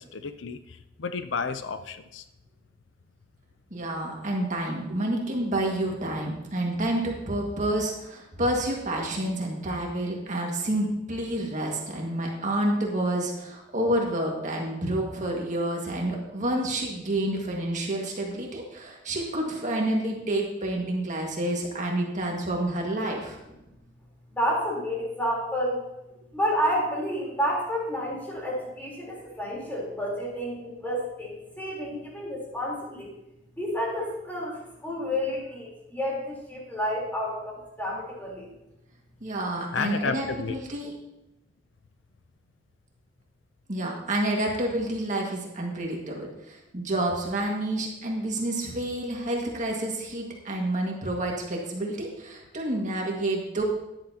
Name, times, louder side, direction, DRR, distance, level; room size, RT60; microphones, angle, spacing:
voice 1, 0.0-2.2 39.7-40.6, left 5 dB, 80° left, 10 dB, 0.5 m, -32 dB
voice 2, 3.7-23.4 39.2-40.9 43.7-53.6, right 1 dB, 45° right, -1 dB, 1.9 m, -29 dB
voice 3, 24.3-25.8 26.3-33.1 33.5-38.5, equal, 10° left, -4 dB, 3.7 m, -30 dB
13.0 x 10.5 x 2.9 m, 0.90 s
head